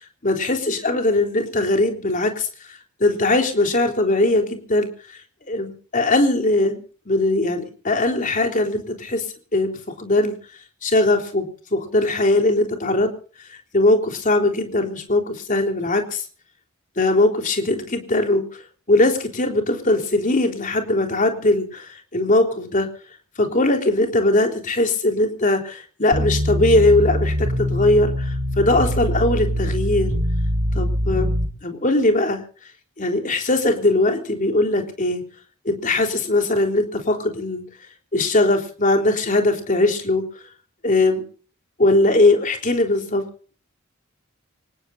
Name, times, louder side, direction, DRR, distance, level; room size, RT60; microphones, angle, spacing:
voice 1, 0.2-2.5 3.0-4.9 5.5-6.8 7.1-9.2 9.5-10.3 10.8-11.5 11.7-13.1 13.7-16.2 17.0-18.4 18.9-22.9 23.4-30.1 30.7-31.3 31.6-32.4 33.0-35.2 35.7-37.6 38.1-40.2 40.8-41.2 41.8-43.2, left 2 dB, 40° left, 4 dB, 3.7 m, -20 dB
sound 1, 26.1-31.5, equal, 85° right, 4.1 m, -23 dB
25.5 x 20.0 x 2.7 m, 0.42 s
head